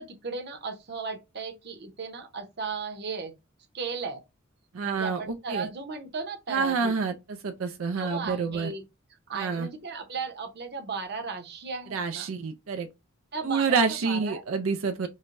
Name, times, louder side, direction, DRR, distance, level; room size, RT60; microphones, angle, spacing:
voice 1, 0.0-3.3 3.7-4.2 4.8-6.9 8.0-8.8 9.3-12.3 13.3-14.4, right 4 dB, 55° right, 0.9 m, -35 dB
voice 2, 4.7-5.7 6.5-8.7 9.3-9.7 11.9-12.9 13.4-15.1, right 5 dB, 90° right, 0.5 m, -28 dB
4.8 x 2.2 x 2.6 m
head